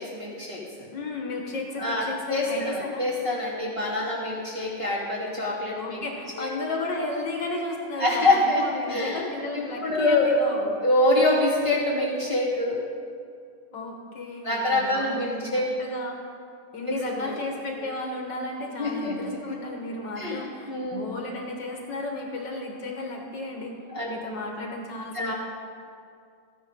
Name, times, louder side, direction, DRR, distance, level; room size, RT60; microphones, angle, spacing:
voice 1, 0.0-0.9 1.8-6.0 6.4-6.5 8.0-9.3 9.5-10.3 10.8-12.8 14.4-15.8 16.9-17.4 17.8-17.9 18.8-19.4 20.2-20.4 20.7-21.0 23.9-24.1 25.1-25.3, left 2 dB, 15° right, -7 dB, 2.2 m, -25 dB
voice 2, 0.9-3.1 5.8-10.8 13.7-16.2 16.7-23.7 24.1-25.3, left 2 dB, 65° left, 1 dB, 2.0 m, -34 dB
14.0 x 9.7 x 5.2 m, 2.3 s
omnidirectional pair, 2.2 m